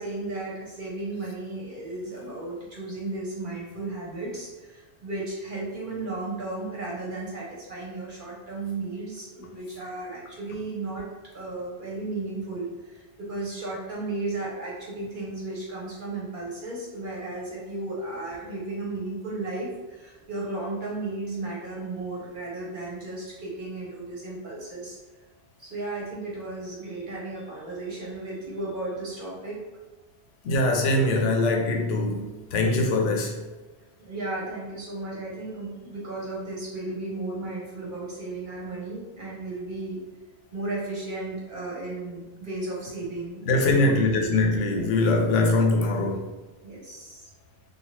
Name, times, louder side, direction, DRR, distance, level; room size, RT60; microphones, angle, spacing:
voice 1, 0.0-11.1 11.3-25.0 25.6-29.6 34.0-40.0 40.5-44.3 44.6-45.1 46.6-47.3, right 2 dB, 50° right, -5 dB, 0.9 m, -34 dB
voice 2, 30.4-32.2 32.5-33.4 43.5-46.3, left 2 dB, 90° left, 3 dB, 0.9 m, -22 dB
2.8 x 2.3 x 3.0 m, 1.2 s
omnidirectional pair, 1.2 m